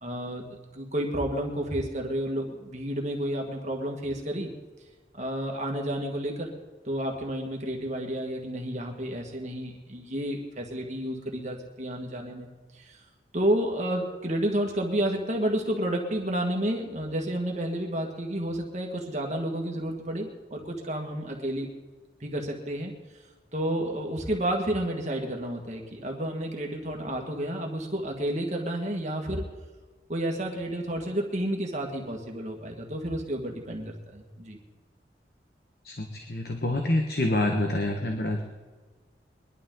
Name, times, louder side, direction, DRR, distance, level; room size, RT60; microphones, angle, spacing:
voice 1, 0.0-4.5 5.1-6.5 6.9-12.5 12.7-13.0 13.3-21.7 22.2-22.9 23.5-29.4 30.1-34.6, right 1 dB, 40° right, 1 dB, 1.8 m, -31 dB
voice 2, 35.8-38.4, left 1 dB, 60° left, 3 dB, 1.4 m, -27 dB
22.5 x 12.0 x 3.9 m, 1.3 s
head